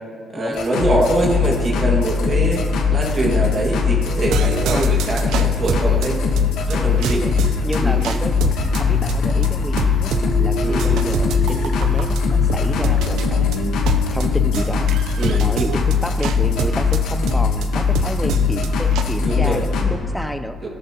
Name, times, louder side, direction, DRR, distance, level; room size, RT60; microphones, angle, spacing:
voice 1, 0.3-6.2 6.7-7.2 7.8-8.0 10.6-10.9 15.2-15.5 19.2-19.6 20.6-20.7, right 2 dB, 40° right, -2 dB, 1.9 m, -23 dB
sound 1, 0.5-19.9, left 6 dB, 90° left, 1.3 m, -20 dB
sound 2, 4.3-19.0, right 6 dB, 85° right, 0.6 m, -27 dB
sound 3, 6.8-8.0 8.5-14.4, left 8 dB, 70° left, 0.3 m, -31 dB
voice 2, 7.2-14.9 15.4-20.6, left 1 dB, 5° left, 9 dB, 0.6 m, -30 dB
16.5 x 13.0 x 2.9 m, 2.1 s
cardioid pair, 90°, 0 cm